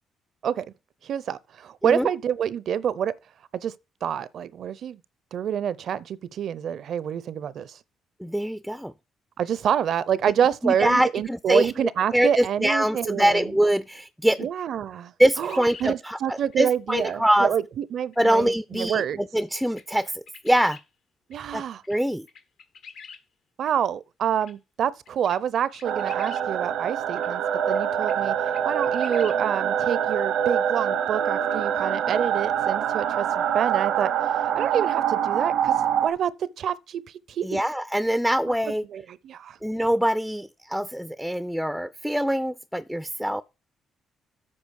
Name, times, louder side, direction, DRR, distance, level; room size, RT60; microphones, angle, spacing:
voice 1, 1.0-3.1 3.5-3.7 4.0-5.0 5.3-7.8 9.4-13.5 14.4-19.3 21.3-21.8 23.6-27.4 27.7-28.4 28.6-34.1 34.6-35.8 36.0-37.0 37.3-37.6 38.9-39.6, right 9 dB, 65° right, 0.6 m, -27 dB
voice 2, 8.2-8.9 10.6-11.7 12.1-14.5 15.2-17.5 18.2-20.8 21.5-21.6 21.9-22.3 37.4-38.8 39.6-43.4, equal, ahead, 0.4 m, -24 dB
sound 1, 15.4-15.9 16.5-16.7 17.0-17.1 18.1-18.3 18.8-18.9 19.4-19.5 19.7-20.8 21.3-21.4 21.8-21.9 22.3-23.2 23.7-23.8 24.4-24.5 25.1-26.4 27.2-27.3 27.7-28.2 28.5-29.4, left 6 dB, 75° left, 1.3 m, -45 dB
sound 2, 25.8-36.1, right 9 dB, 90° right, 1.0 m, -25 dB
8.6 x 5.0 x 6.3 m
cardioid pair, 90°, 0 cm